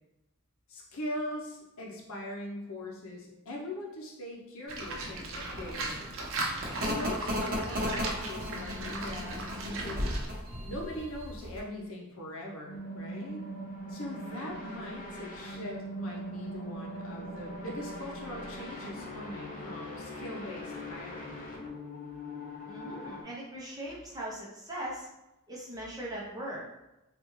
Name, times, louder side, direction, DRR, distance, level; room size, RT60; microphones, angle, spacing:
voice 1, 0.7-6.1 6.8-10.1 10.7-13.4 13.9-21.5, left 1 dB, 70° left, -1 dB, 0.7 m, -41 dB
sound 1, 4.7-11.6, equal, 40° right, 0.9 m, -36 dB
Livestock farm animals working animals, 4.7-10.3, right 2 dB, 65° right, 0.6 m, -38 dB
sound 2, 12.7-23.2, equal, 40° left, 0.5 m, -41 dB
voice 2, 22.7-25.1 25.5-26.6, right 1 dB, 15° right, -4 dB, 0.7 m, -40 dB
3.3 x 2.4 x 3.0 m, 0.94 s
head